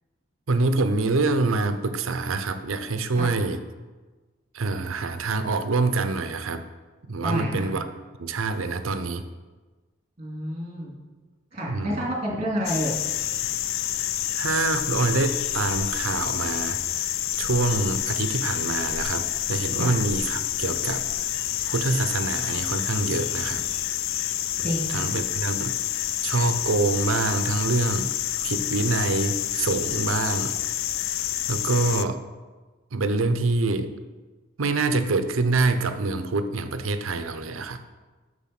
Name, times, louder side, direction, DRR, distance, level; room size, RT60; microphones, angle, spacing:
voice 1, 0.5-3.6 4.5-6.7 7.1-7.8 8.2-9.2 11.7-12.0 14.3-17.1 17.4-23.7 24.9-28.1 28.4-30.5 30.8-32.2 32.9-33.9 34.6-37.8, right 3 dB, 85° right, 9 dB, 0.7 m, -26 dB
voice 2, 7.2-7.7 10.2-11.0 11.5-13.0 19.8-19.9 24.6-25.1, equal, 35° right, -2 dB, 2.3 m, -29 dB
sound 1, 12.6-32.0, left 12 dB, 80° left, 0.4 m, -28 dB
7.2 x 6.8 x 5.8 m, 1.3 s
head